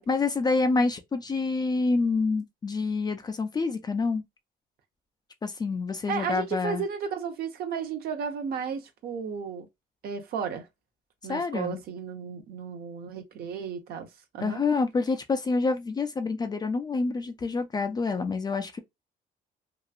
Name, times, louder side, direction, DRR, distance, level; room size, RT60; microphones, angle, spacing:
voice 1, 0.1-4.2 5.4-6.8 11.3-11.8 14.4-18.8, left 3 dB, 25° left, 0.4 m, -27 dB
voice 2, 6.1-9.7 10.0-10.7 11.2-14.1 14.3-14.6, right 6 dB, 65° right, 0.7 m, -33 dB
2.8 x 2.3 x 2.3 m
cardioid pair, 110°, 17 cm